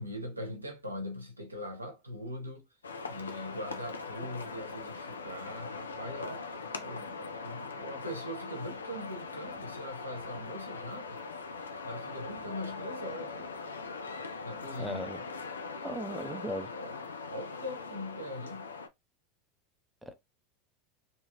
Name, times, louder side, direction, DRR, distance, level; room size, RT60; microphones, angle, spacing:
voice 1, 0.0-2.7 3.0-11.2 11.8-13.5 14.4-15.2 16.7-17.0 17.3-18.7, left 1 dB, 90° right, 0.6 m, -41 dB
sound 1, 2.8-18.9, left 4 dB, 80° left, 0.3 m, -41 dB
voice 2, 14.8-15.2 15.8-16.7 20.0-20.2, right 1 dB, 5° right, 0.6 m, -37 dB
2.8 x 2.4 x 2.8 m
figure-of-eight pair, 80°, 0 cm